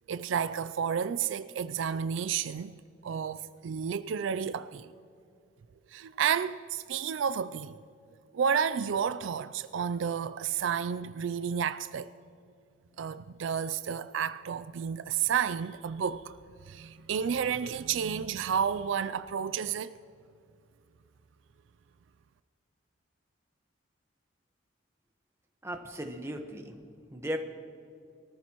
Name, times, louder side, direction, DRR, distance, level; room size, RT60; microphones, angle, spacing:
voice 1, 0.1-4.9 5.9-7.8 8.3-12.1 13.0-16.3 16.7-19.9, right 7 dB, 70° right, 0.4 m, -31 dB
voice 2, 25.6-27.4, equal, 15° right, 1.1 m, -37 dB
23.5 x 14.0 x 3.0 m
head